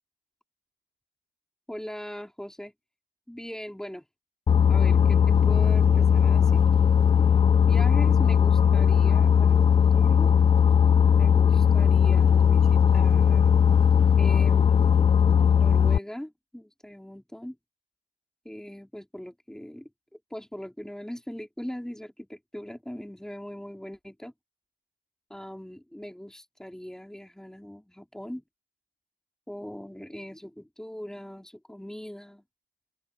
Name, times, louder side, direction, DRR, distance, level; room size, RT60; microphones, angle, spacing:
voice 1, 1.7-2.7 3.3-4.0 4.7-6.6 7.7-10.3 11.1-13.5 14.2-14.7 15.6-17.6 18.4-24.3 25.3-28.4 29.5-32.4, equal, 5° left, 3.3 m, -40 dB
Boat Water vehicle, 4.5-16.0, left 7 dB, 30° left, 0.3 m, -19 dB
open air
cardioid pair, 90°, 20 cm